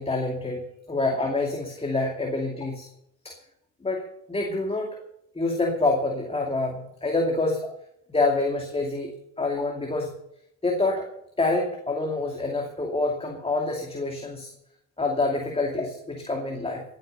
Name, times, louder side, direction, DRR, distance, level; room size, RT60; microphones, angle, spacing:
voice 1, 0.0-2.9 3.2-3.4 3.8-5.0 5.3-7.7 8.1-9.1 9.4-10.1 10.6-11.1 11.4-14.5 15.0-16.8, left 2 dB, 20° left, 1 dB, 2.5 m, -27 dB
19.0 x 8.9 x 6.8 m, 0.78 s
cardioid pair, 90°, 30 cm